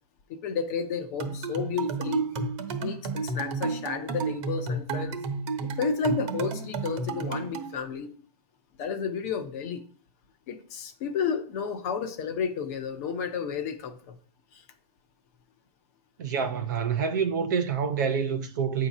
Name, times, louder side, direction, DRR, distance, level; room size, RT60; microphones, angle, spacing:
voice 1, 0.3-2.2 2.8-5.2 5.6-8.1 8.8-9.8 10.5-14.2 14.5-14.6, left 6 dB, 25° left, 0.6 m, -32 dB
sound 1, 1.2-7.7, right 4 dB, 45° right, 1.2 m, -31 dB
voice 2, 16.2-18.9, right 6 dB, 30° right, 0.5 m, -27 dB
8.2 x 2.8 x 5.9 m
hypercardioid pair, 165°, 20 cm